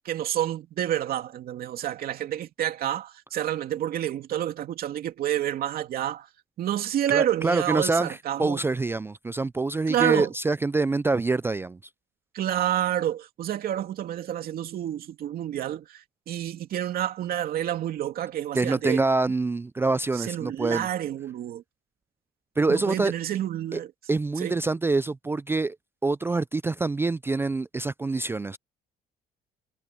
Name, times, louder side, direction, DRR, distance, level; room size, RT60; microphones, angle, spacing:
voice 1, 0.0-6.3 6.6-8.6 9.9-10.3 12.3-19.0 20.1-21.6 22.7-23.9 24.4-24.6, right 11 dB, 60° right, 2.7 m, -29 dB
voice 2, 7.1-11.8 18.5-20.9 22.6-23.1 23.7-23.8 24.1-25.8 26.0-28.6, right 3 dB, 15° right, 0.3 m, -25 dB
cardioid pair, 110°, 17 cm